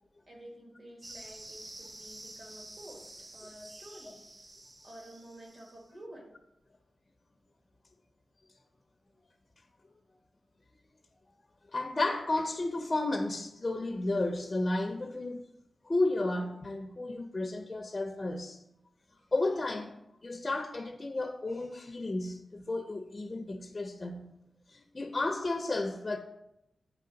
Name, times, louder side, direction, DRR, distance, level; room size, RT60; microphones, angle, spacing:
voice 1, 0.3-4.2 4.8-6.3, right 1 dB, 45° right, 1.6 m, -50 dB
sound 1, 1.0-5.8, right 1 dB, 25° right, 0.3 m, -49 dB
voice 2, 11.7-15.4 15.8-18.6 19.3-20.0 20.2-24.3 24.7-26.2, left 2 dB, 30° left, 0.5 m, -32 dB
8.6 x 3.0 x 3.9 m
wide cardioid pair, 100°, 0 cm